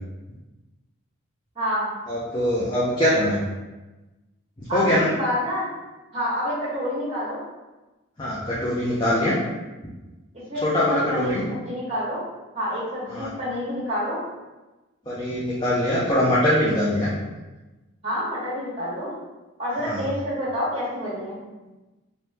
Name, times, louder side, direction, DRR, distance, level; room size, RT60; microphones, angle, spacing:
voice 1, 1.5-1.9 4.7-5.7 6.1-7.4 10.3-12.2 12.5-14.2 18.0-19.1 19.6-21.4, equal, 30° right, -7 dB, 1.3 m, -28 dB
voice 2, 2.1-3.4 4.6-5.1 8.2-9.4 10.6-11.4 13.1-13.3 15.1-17.1 19.8-20.0, left 1 dB, 20° left, -8 dB, 0.5 m, -22 dB
3.0 x 2.7 x 3.4 m, 1.1 s
head